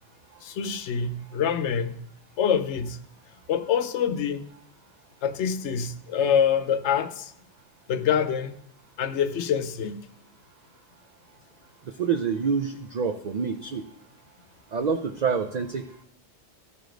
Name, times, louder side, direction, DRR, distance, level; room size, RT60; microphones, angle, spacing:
voice 1, 0.4-2.0 2.4-3.0 3.5-4.4 5.2-7.3 7.9-8.5 9.0-10.0, left 7 dB, 75° left, 0.9 m, -25 dB
voice 2, 12.0-13.8 14.7-15.8, right 6 dB, 55° right, 0.5 m, -27 dB
14.0 x 5.0 x 3.8 m
omnidirectional pair, 1.2 m